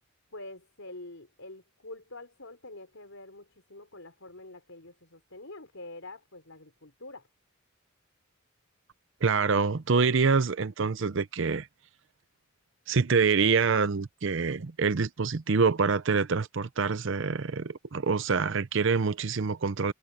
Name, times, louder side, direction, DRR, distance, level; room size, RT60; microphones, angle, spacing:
voice 1, 0.3-7.3, left 2 dB, 70° left, 4.9 m, -46 dB
voice 2, 9.2-11.7 12.9-19.9, right 5 dB, 60° right, 0.6 m, -26 dB
head